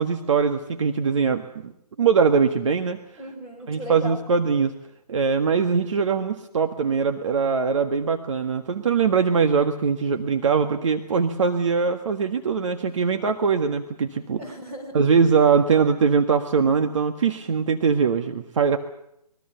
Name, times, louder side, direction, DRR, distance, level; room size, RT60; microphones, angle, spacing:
voice 1, 0.0-1.7 2.0-3.0 3.7-4.7 5.1-14.4 14.9-18.8, right 5 dB, 50° right, 7 dB, 1.6 m, -22 dB
voice 2, 3.2-4.2 14.4-15.0, right 1 dB, 15° right, 1 dB, 6.6 m, -36 dB
25.0 x 22.0 x 6.9 m, 0.78 s
figure-of-eight pair, 145°, 20 cm